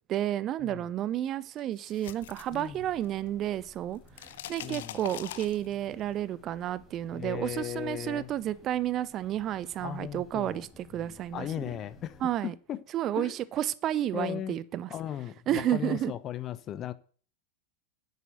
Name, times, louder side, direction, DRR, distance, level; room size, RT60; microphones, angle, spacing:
voice 1, 0.1-11.5 12.2-12.5 12.9-14.9 15.5-16.1, right 12 dB, 30° right, 0.7 m, -31 dB
sound 1, 1.6-3.3 3.5-6.0, left 12 dB, 55° left, 0.8 m, -43 dB
sound 2, 2.2-12.4, left 1 dB, 15° left, 4.5 m, -56 dB
voice 2, 2.5-2.8 4.6-5.0 7.1-8.3 9.8-10.6 11.0-12.8 13.2-13.4 14.1-14.6 14.9-16.9, left 11 dB, 30° left, 1.0 m, -37 dB
10.0 x 9.4 x 8.0 m
figure-of-eight pair, 90°, 0 cm